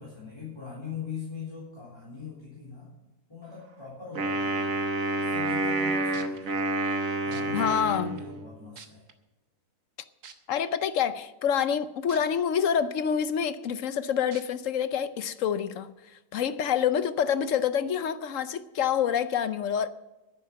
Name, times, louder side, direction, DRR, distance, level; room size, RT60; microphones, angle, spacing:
voice 1, 0.0-2.9 3.3-4.7 5.2-6.6 7.2-9.0, left 6 dB, 15° left, 3.8 m, -41 dB
Wind instrument woodwind instrument, 4.1-8.6, right 2 dB, 60° right, 1.6 m, -29 dB
sound 1, 6.1-6.4 7.3-7.4 8.2-8.3 8.8-9.1 10.2-10.3 12.1-12.2 12.7-12.8 14.3-14.4 15.2-15.3, right 7 dB, 75° right, 1.7 m, -46 dB
voice 2, 7.5-8.2 10.5-15.9 16.3-19.9, left 8 dB, 60° left, 1.0 m, -27 dB
11.0 x 10.0 x 7.4 m
omnidirectional pair, 1.7 m